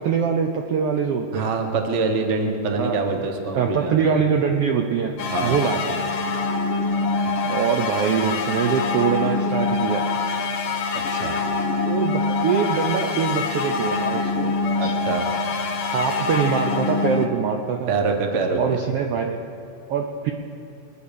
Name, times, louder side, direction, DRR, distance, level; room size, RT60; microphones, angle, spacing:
voice 1, 0.0-1.5 2.7-3.0 3.5-5.1 5.4-6.1 7.5-10.1 11.8-14.6 14.8-14.9 15.9-17.9 18.6-19.4 19.9-20.3, right 6 dB, 75° right, 3 dB, 1.4 m, -23 dB
voice 2, 1.3-4.0 5.3-5.6 10.9-11.4 14.8-15.3 17.9-18.8, right 4 dB, 45° right, 4 dB, 0.9 m, -25 dB
sound 1, 5.2-17.3, left 3 dB, 60° left, 1.5 m, -25 dB
23.0 x 8.1 x 6.9 m, 2.7 s
omnidirectional pair, 3.4 m